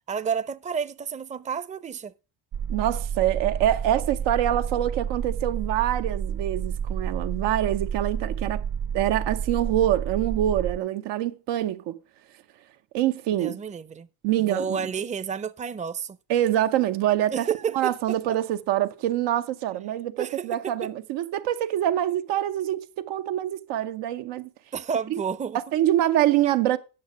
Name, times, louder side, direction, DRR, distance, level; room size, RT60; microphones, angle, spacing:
voice 1, 0.1-2.1 13.3-14.1 14.4-16.2 17.3-18.2 20.2-20.9 24.7-25.6, right 6 dB, 20° right, 0.5 m, -31 dB
sound 1, 2.5-10.8, right 7 dB, 55° right, 0.8 m, -30 dB
voice 2, 2.7-8.6 8.9-12.0 12.9-13.6 14.2-14.9 16.3-17.5 17.7-24.5 25.1-25.2 25.5-26.8, right 12 dB, 90° right, 0.9 m, -25 dB
8.7 x 6.6 x 6.1 m
cardioid pair, 95°, 42 cm